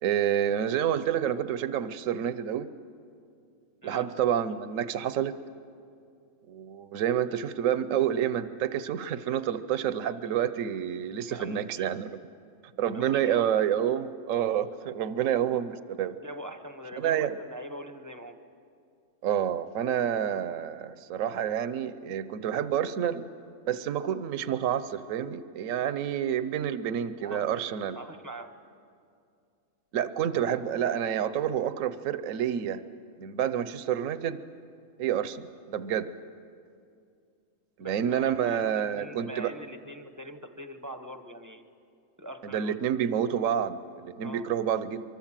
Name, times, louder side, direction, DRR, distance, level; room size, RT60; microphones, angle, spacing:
voice 1, 0.0-2.7 3.8-5.3 6.5-12.1 12.8-16.1 17.0-17.3 19.2-23.2 23.6-28.0 29.9-32.8 33.2-34.4 35.0-36.1 37.8-39.5 42.4-45.0, right 9 dB, 75° right, 12 dB, 1.1 m, -28 dB
voice 2, 11.3-11.9 12.9-13.7 16.1-18.4 27.2-27.7 27.9-28.5 37.8-41.6 42.2-42.8 44.2-44.5, right 1 dB, 15° right, 8 dB, 0.9 m, -43 dB
24.5 x 24.0 x 7.5 m, 2.4 s
omnidirectional pair, 1.4 m